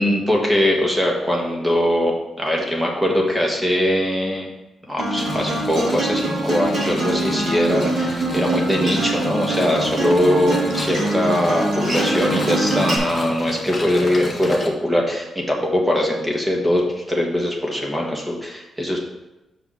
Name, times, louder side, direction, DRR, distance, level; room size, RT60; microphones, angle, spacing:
voice 1, 0.0-4.5 4.9-19.0, left 1 dB, 10° right, -1 dB, 1.5 m, -21 dB
Acoustic guitar, 5.0-13.0, right 2 dB, 55° right, 2.9 m, -24 dB
sound 1, 5.2-14.7, left 1 dB, 20° left, 1.4 m, -33 dB
5.9 x 4.9 x 6.1 m, 0.97 s
cardioid pair, 105°, 0 cm